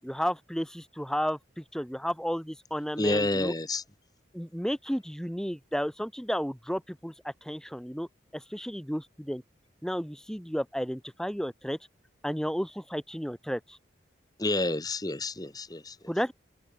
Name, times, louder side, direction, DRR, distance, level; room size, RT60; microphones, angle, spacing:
voice 1, 0.0-3.5 4.3-9.4 9.8-11.8 12.2-13.8 16.1-16.3, equal, 5° left, 7.8 m, -33 dB
voice 2, 3.0-3.8 14.4-15.9, left 2 dB, 20° left, 1.4 m, -29 dB
open air
head